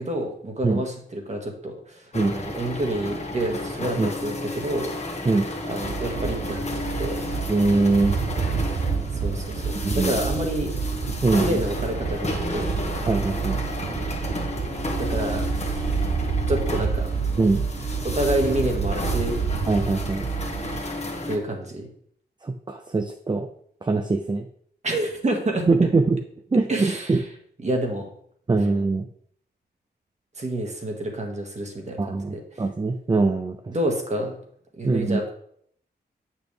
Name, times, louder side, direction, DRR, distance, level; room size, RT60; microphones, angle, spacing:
voice 1, 0.0-4.9 5.7-7.2 9.1-10.7 11.4-12.9 15.0-15.9 16.5-17.1 18.0-19.4 20.9-21.0 21.3-21.9 24.8-25.7 26.7-27.2 27.6-28.1 30.4-32.2 32.5-32.6 33.7-34.4 34.8-35.3, right 1 dB, 40° right, 2 dB, 1.8 m, -28 dB
sound 1, 2.1-21.4, left 2 dB, 40° left, 1.4 m, -32 dB
sound 2, 5.8-20.8, right 5 dB, 60° right, 0.8 m, -28 dB
voice 2, 7.5-8.2 9.8-10.2 11.2-11.6 13.1-13.6 17.4-17.6 19.7-20.3 22.4-23.5 23.8-24.5 25.7-26.2 26.5-27.2 28.5-29.1 32.0-33.7 34.8-35.2, right 3 dB, 25° right, 5 dB, 0.5 m, -22 dB
8.9 x 6.1 x 3.4 m, 0.64 s
wide cardioid pair, 110°, 17 cm